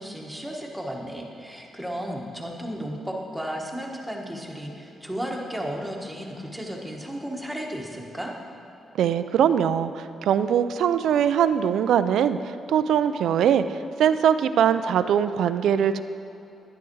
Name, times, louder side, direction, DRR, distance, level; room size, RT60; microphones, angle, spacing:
voice 1, 0.0-8.3, equal, 5° right, 0 dB, 1.4 m, -34 dB
voice 2, 9.0-12.4 12.7-16.0, right 8 dB, 80° right, 12 dB, 0.4 m, -22 dB
10.5 x 10.5 x 4.6 m, 3.0 s
cardioid pair, 135°, 0 cm